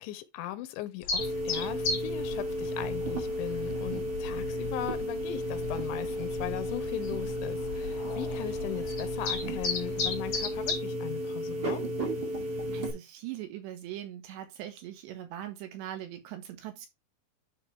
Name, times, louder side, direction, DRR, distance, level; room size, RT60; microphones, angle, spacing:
voice 1, 0.0-11.8, left 14 dB, 85° left, 3.1 m, -39 dB
sound 1, 1.0-10.8, left 4 dB, 40° left, 3.4 m, -37 dB
sound 2, 1.2-12.9, equal, 35° right, 1.6 m, -33 dB
voice 2, 12.7-16.9, right 12 dB, 75° right, 3.4 m, -41 dB
11.0 x 3.9 x 3.4 m
omnidirectional pair, 5.3 m